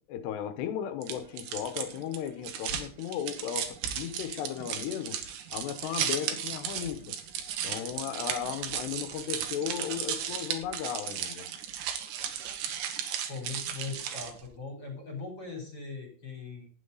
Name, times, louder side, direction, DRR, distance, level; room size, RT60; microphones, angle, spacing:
voice 1, 0.0-7.2 7.6-11.5, left 9 dB, 80° left, 3.0 m, -36 dB
sound 1, 1.0-14.5, right 9 dB, 80° right, 3.5 m, -35 dB
voice 2, 13.3-16.7, left 4 dB, 25° left, 3.4 m, -40 dB
12.5 x 9.6 x 3.9 m
omnidirectional pair, 4.9 m